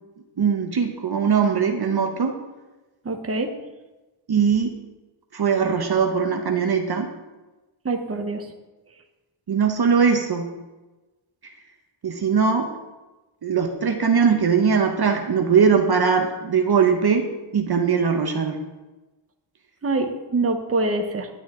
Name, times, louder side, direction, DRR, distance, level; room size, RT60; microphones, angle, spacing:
voice 1, 0.4-2.4 4.3-4.7 5.3-7.1 9.5-10.5 12.0-12.7 13.4-17.3 17.5-18.6, right 6 dB, 50° right, 4 dB, 0.9 m, -20 dB
voice 2, 3.0-3.5 7.8-8.5 19.8-21.3, right 2 dB, 30° right, 5 dB, 1.0 m, -25 dB
11.0 x 10.0 x 3.7 m, 1.1 s
wide cardioid pair, 125°, 49 cm